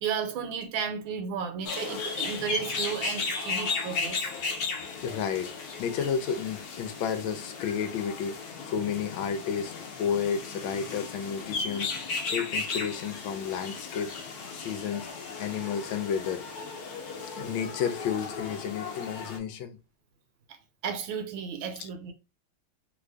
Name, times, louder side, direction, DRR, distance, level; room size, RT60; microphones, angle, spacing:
voice 1, 0.0-4.3 20.8-22.1, right 7 dB, 75° right, 1.4 m, -33 dB
sound 1, 1.6-19.4, left 4 dB, 65° left, 1.0 m, -35 dB
voice 2, 5.0-5.5 5.8-8.4 8.6-9.7 10.0-15.1 15.4-16.4 16.7-16.8 17.4-19.8 21.8-21.9, left 7 dB, 80° left, 1.3 m, -32 dB
3.3 x 2.5 x 3.3 m
omnidirectional pair, 2.2 m